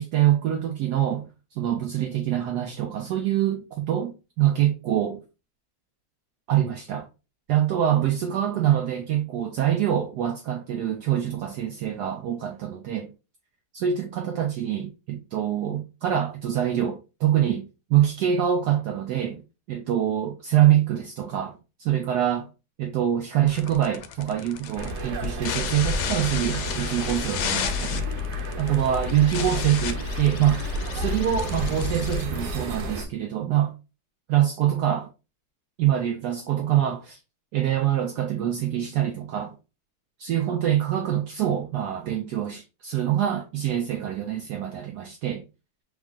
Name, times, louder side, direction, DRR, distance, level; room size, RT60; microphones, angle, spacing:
voice 1, 0.0-5.2 6.5-7.1 7.5-13.1 13.7-19.4 19.7-22.5 22.8-28.1 28.6-30.6 30.9-33.7 34.3-35.1 35.8-37.2 37.5-39.6 40.2-45.4, right 11 dB, 85° right, 0.8 m, -25 dB
sound 1, 23.5-33.0, left 8 dB, 75° left, 1.3 m, -33 dB
sound 2, 24.7-33.0, left 1 dB, 65° right, 1.1 m, -31 dB
3.5 x 2.3 x 3.6 m
omnidirectional pair, 2.3 m